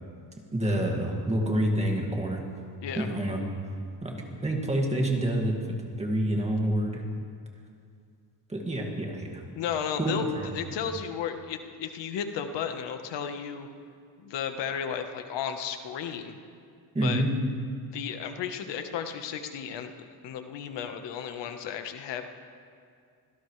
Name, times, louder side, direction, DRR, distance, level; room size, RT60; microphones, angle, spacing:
voice 1, 0.5-2.4 3.0-3.4 4.0-5.6 6.0-7.0 8.5-9.4 10.0-10.5 16.9-17.3, right 1 dB, 15° right, 0 dB, 2.1 m, -27 dB
voice 2, 9.5-10.3 10.5-13.7 14.2-16.4 17.0-17.2 17.9-19.9 20.2-22.2, left 8 dB, 90° left, 7 dB, 1.3 m, -34 dB
25.0 x 17.0 x 3.3 m, 2.3 s
cardioid pair, 155°, 41 cm